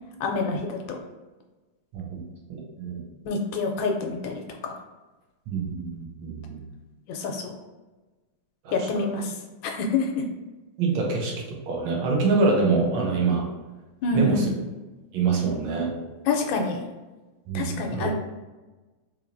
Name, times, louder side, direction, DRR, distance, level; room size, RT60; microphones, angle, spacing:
voice 1, 0.2-1.0 3.2-4.7 7.1-7.5 8.7-9.3 9.6-10.2 14.0-14.5 16.3-16.8 17.5-18.1, left 3 dB, 75° left, 2 dB, 1.2 m, -27 dB
voice 2, 2.5-3.0 5.5-6.6 8.6-8.9 10.8-11.3 11.7-13.5 14.1-14.5 15.1-15.9 17.5-18.1, right 4 dB, 75° right, -1 dB, 1.6 m, -25 dB
3.8 x 3.1 x 2.5 m, 1.2 s
omnidirectional pair, 2.3 m